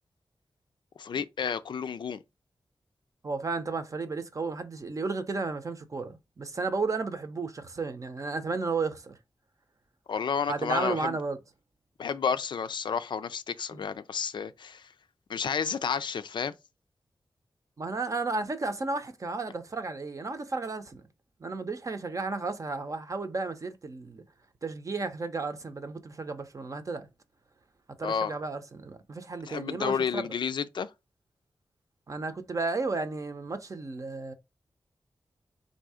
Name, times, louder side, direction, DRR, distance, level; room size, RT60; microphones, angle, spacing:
voice 1, 1.0-2.2 10.1-11.2 12.0-14.9 15.3-16.5 28.0-28.3 29.5-30.9, left 6 dB, 70° left, 0.4 m, -31 dB
voice 2, 3.2-9.2 10.5-11.4 13.7-13.8 17.8-21.0 21.4-24.2 24.6-27.1 28.0-30.3 32.1-34.3, right 3 dB, 40° right, 0.7 m, -33 dB
3.8 x 2.7 x 4.8 m
wide cardioid pair, 105°, 8 cm